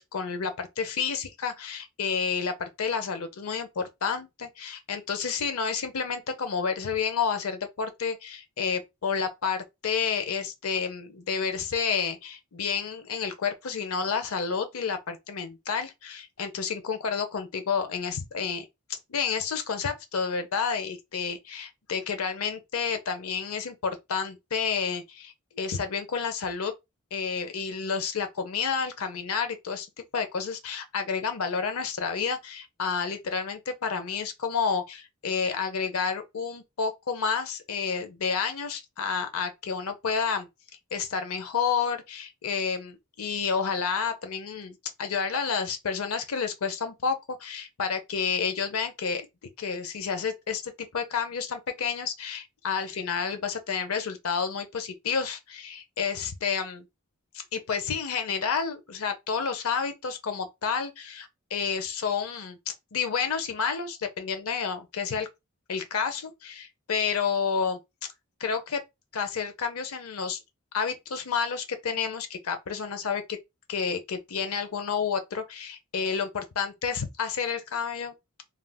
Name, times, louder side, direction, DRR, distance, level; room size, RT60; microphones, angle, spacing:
voice 1, 0.0-26.7 27.1-29.9 30.1-40.5 40.9-49.3 49.6-56.8 57.5-65.3 65.7-67.8 68.4-68.8 69.1-70.4 70.7-73.4 73.7-78.1, left 6 dB, 80° left, 0.6 m, -30 dB
3.3 x 2.5 x 2.2 m
head